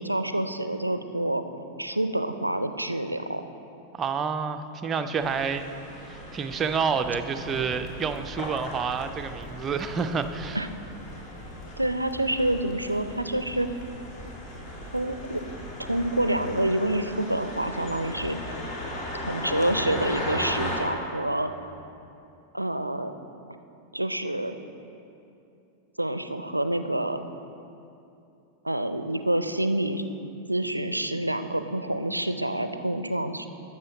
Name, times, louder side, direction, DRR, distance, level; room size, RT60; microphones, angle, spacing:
voice 1, 0.0-1.4 1.8-3.4 10.5-10.7 11.8-13.7 14.9-15.4 15.8-18.4 19.2-21.5 22.5-23.1 23.9-24.6 26.0-27.2 28.6-30.0 30.5-33.5, right 1 dB, 85° right, 9 dB, 0.4 m, -27 dB
voice 2, 3.9-5.7 6.1-10.6, right 5 dB, 25° right, 7 dB, 0.5 m, -29 dB
sound 1, 5.2-20.8, left 1 dB, 40° left, 2.1 m, -37 dB
Crackle, 7.5-16.5, equal, 20° left, 1.7 m, -45 dB
12.0 x 7.5 x 4.1 m, 2.8 s
figure-of-eight pair, 90°, 0 cm